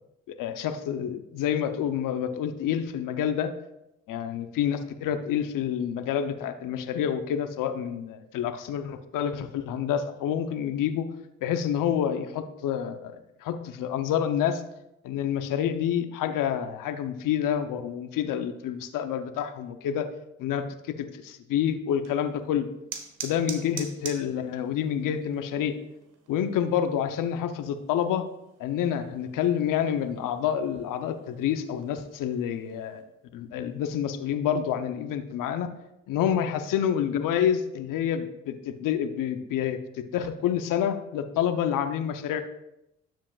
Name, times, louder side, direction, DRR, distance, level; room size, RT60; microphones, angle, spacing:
voice 1, 0.3-3.5 4.1-11.0 11.4-14.6 15.0-20.1 20.4-22.7 23.2-25.8 26.3-28.2 28.6-33.0 33.3-35.7 36.1-39.8 40.1-42.4, left 9 dB, 70° left, 9 dB, 0.8 m, -28 dB
sound 1, 21.9-33.0, right 7 dB, 70° right, 1.6 m, -46 dB
12.0 x 7.4 x 2.4 m, 0.85 s
supercardioid pair, 65°, 33 cm